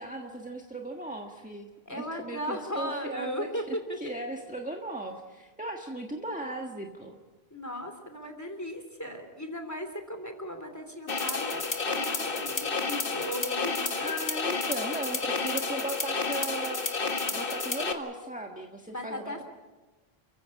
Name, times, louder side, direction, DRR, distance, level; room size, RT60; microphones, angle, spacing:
voice 1, 0.0-7.2 14.0-16.9 17.3-19.4, right 1 dB, 10° right, 2 dB, 1.6 m, -37 dB
voice 2, 1.8-4.0 7.5-11.6 11.9-13.7 18.9-19.4, equal, 15° left, 6 dB, 3.3 m, -36 dB
sound 1, 11.1-17.9, left 4 dB, 60° left, 1.9 m, -30 dB
29.5 x 15.5 x 8.6 m, 1.2 s
omnidirectional pair, 1.0 m